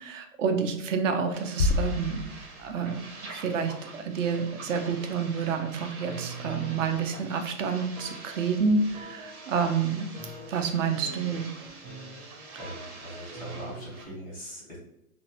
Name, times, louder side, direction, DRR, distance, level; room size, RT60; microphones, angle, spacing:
voice 1, 0.0-2.2 2.6-3.0 3.3-10.1 10.5-11.5, right 5 dB, 60° right, 5 dB, 0.6 m, -28 dB
sound 1, 1.3-14.1, right 3 dB, 85° right, 0.9 m, -46 dB
sound 2, 1.6-3.4, left 3 dB, 70° left, 0.5 m, -29 dB
sound 3, 6.0-7.6 7.9-9.8 10.1-14.1, right 3 dB, 30° right, 0.8 m, -44 dB
voice 2, 12.6-14.8, equal, ahead, -8 dB, 0.5 m, -41 dB
2.6 x 2.0 x 2.7 m, 0.83 s
hypercardioid pair, 155°, 42 cm